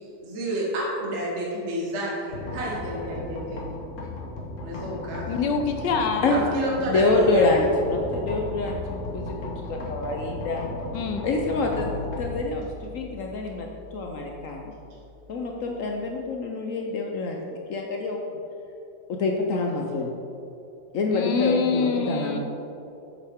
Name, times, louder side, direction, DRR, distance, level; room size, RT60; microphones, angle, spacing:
voice 1, 0.2-3.7 4.6-5.3 6.3-7.5, right 1 dB, 35° right, -4 dB, 1.6 m, -30 dB
sound 1, 2.3-16.2, left 2 dB, 45° left, 1.2 m, -36 dB
voice 2, 5.3-6.4 10.9-11.3 21.1-22.4, left 5 dB, 70° left, 6 dB, 1.2 m, -25 dB
voice 3, 6.9-9.3 9.6-10.7 11.2-11.9 12.2-13.7 13.9-14.7 15.3-18.2 19.1-20.2 20.9-22.4, left 3 dB, 90° left, 1 dB, 0.7 m, -26 dB
9.1 x 7.6 x 3.6 m, 2.8 s
omnidirectional pair, 2.3 m